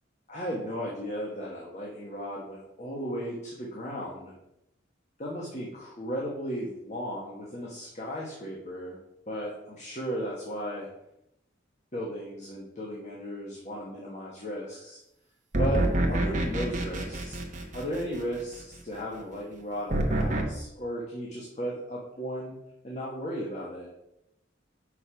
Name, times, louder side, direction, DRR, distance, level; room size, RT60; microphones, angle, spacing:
voice 1, 0.3-4.3 5.2-9.0 9.3-10.9 11.9-15.0 15.6-17.4 17.7-22.5 22.8-23.9, equal, 35° left, -4 dB, 1.2 m, -35 dB
sound 1, 15.5-18.4 19.9-20.4, right 1 dB, 40° right, 0.9 m, -27 dB
5.3 x 4.9 x 5.6 m, 0.85 s
head